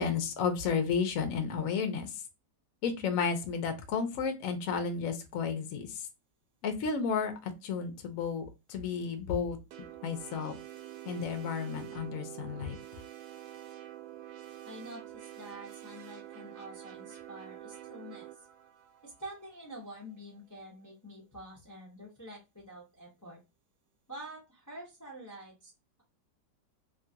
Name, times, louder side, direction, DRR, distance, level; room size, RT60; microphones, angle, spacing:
voice 1, 0.0-2.2 2.8-6.1 6.6-9.6 10.0-10.5 11.0-12.8, left 6 dB, 65° left, 7 dB, 0.8 m, -32 dB
sound 1, 9.7-20.2, right 13 dB, 70° right, 1.0 m, -47 dB
voice 2, 14.6-18.3 19.0-23.4 24.1-25.7, right 1 dB, 30° left, -3 dB, 0.3 m, -47 dB
2.9 x 2.3 x 2.7 m, 0.26 s
omnidirectional pair, 1.9 m